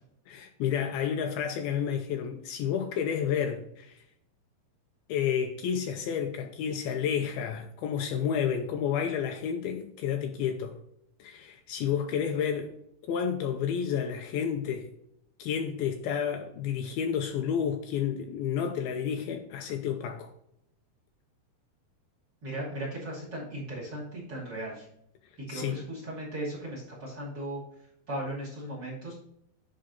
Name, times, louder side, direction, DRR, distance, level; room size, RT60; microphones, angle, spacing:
voice 1, 0.3-4.0 5.1-10.8 11.2-12.7 13.1-14.9 15.4-20.3 25.5-25.8, left 8 dB, 85° left, 2.3 m, -30 dB
voice 2, 22.4-24.9 25.5-27.6 28.1-29.1, right 1 dB, 30° right, 2.5 m, -37 dB
10.5 x 3.9 x 3.9 m
omnidirectional pair, 4.7 m